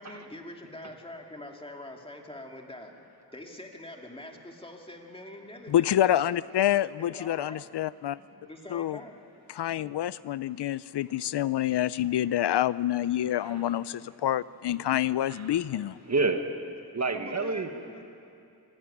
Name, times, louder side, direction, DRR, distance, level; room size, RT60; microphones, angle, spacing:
voice 1, 0.0-3.0 3.3-6.7 7.0-7.6 8.4-9.2 17.1-18.0, left 1 dB, 15° left, 1 dB, 2.4 m, -44 dB
voice 2, 5.7-8.2 8.7-9.0 9.5-16.0, left 12 dB, 80° left, 18 dB, 0.5 m, -27 dB
voice 3, 15.3-15.6 16.1-16.5 16.9-17.7, right 3 dB, 40° right, 5 dB, 1.6 m, -29 dB
25.5 x 15.5 x 9.9 m, 2.5 s
wide cardioid pair, 140°, 40 cm